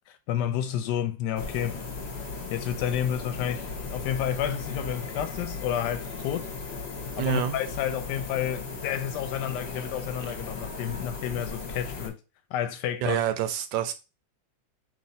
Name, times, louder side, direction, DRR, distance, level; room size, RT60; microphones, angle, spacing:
voice 1, 0.1-1.8 2.5-6.5 7.2-12.2 12.5-13.2, left 10 dB, 70° left, 1.2 m, -30 dB
sound 1, 1.4-12.1, left 4 dB, 45° left, 1.0 m, -37 dB
voice 2, 7.2-7.6 13.0-13.9, right 10 dB, 80° right, 1.3 m, -27 dB
3.0 x 3.0 x 4.0 m
omnidirectional pair, 2.1 m